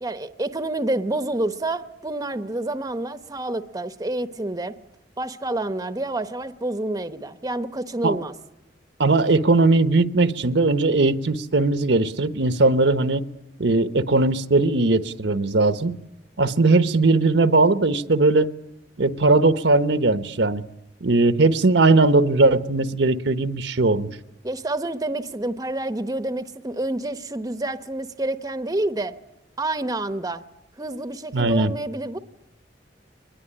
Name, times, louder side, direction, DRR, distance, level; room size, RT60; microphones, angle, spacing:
voice 1, 0.0-4.7 5.2-8.3 24.4-29.2 29.6-30.4 30.8-32.2, right 2 dB, 20° right, 11 dB, 0.9 m, -28 dB
voice 2, 9.0-13.2 13.6-15.9 16.4-18.5 19.0-20.6 21.0-24.1 31.3-31.7, right 3 dB, 75° right, 12 dB, 1.0 m, -19 dB
23.5 x 20.5 x 10.0 m, 0.88 s
head